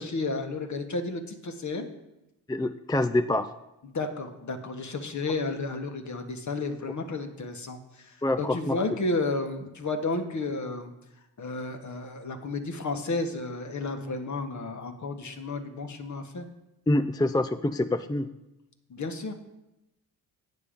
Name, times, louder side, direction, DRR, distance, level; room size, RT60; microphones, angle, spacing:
voice 1, 0.0-1.9 3.8-10.9 11.4-16.5 18.9-19.3, left 3 dB, 45° left, 6 dB, 1.4 m, -32 dB
voice 2, 2.5-3.5 8.2-8.8 16.9-18.3, left 1 dB, 10° left, 11 dB, 0.4 m, -26 dB
8.8 x 6.7 x 5.2 m, 0.94 s
supercardioid pair, 55°, 41 cm